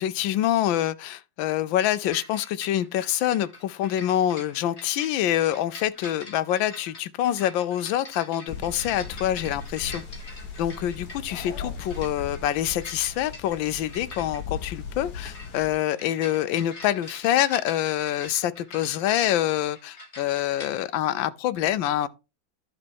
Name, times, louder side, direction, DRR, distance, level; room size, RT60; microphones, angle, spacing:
voice 1, 0.0-10.0 10.6-22.1, left 12 dB, 75° left, 1.4 m, -26 dB
sound 1, 2.1-20.9, left 2 dB, 35° left, 2.7 m, -45 dB
sound 2, 8.5-15.7, left 5 dB, 55° left, 1.8 m, -38 dB
10.5 x 5.2 x 4.6 m
omnidirectional pair, 2.2 m